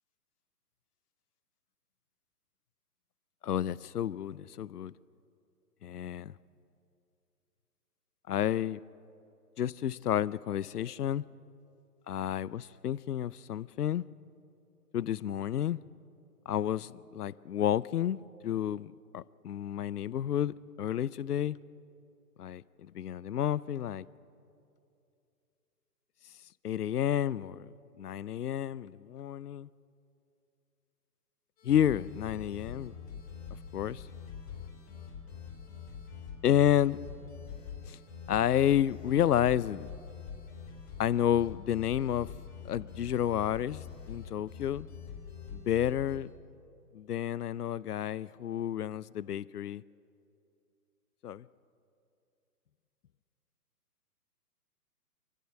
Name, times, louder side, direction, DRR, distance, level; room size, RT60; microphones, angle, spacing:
voice 1, 3.4-4.9 5.8-6.3 8.3-8.8 9.6-11.2 12.1-14.0 14.9-15.8 16.5-21.6 22.4-22.6 22.9-24.1 26.6-29.7 31.6-32.9 33.7-34.0 36.4-37.0 37.9-38.0 38.3-39.9 41.0-42.3 42.6-44.9 45.5-46.3 46.9-49.8 51.2-51.4, left 10 dB, 75° left, 0.6 m, -30 dB
sound 1, 31.6-46.2, left 7 dB, 20° left, 2.6 m, -45 dB
26.5 x 15.0 x 7.6 m
figure-of-eight pair, 130°, 47 cm